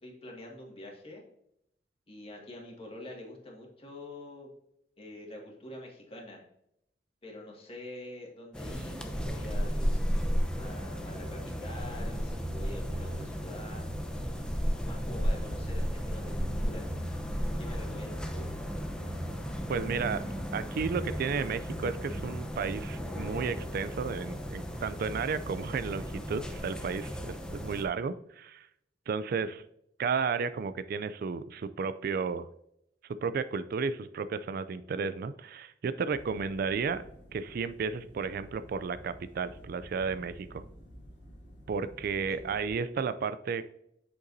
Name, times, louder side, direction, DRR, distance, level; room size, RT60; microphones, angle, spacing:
voice 1, 0.0-1.2 2.1-4.5 5.0-6.4 7.2-10.3 10.6-13.8 14.8-16.9 17.6-18.5 42.3-42.6, left 1 dB, 35° left, -1 dB, 1.9 m, -46 dB
sound 1, 8.5-27.8, equal, 5° left, 0.7 m, -34 dB
voice 2, 19.7-20.2 20.5-28.7 29.1-29.6 30.0-32.5 33.2-37.0 37.3-40.6 41.7-43.7, right 5 dB, 55° right, 13 dB, 0.3 m, -33 dB
sound 2, 36.1-42.7, equal, 80° left, 1.9 m, -52 dB
7.9 x 6.6 x 2.7 m, 0.75 s
head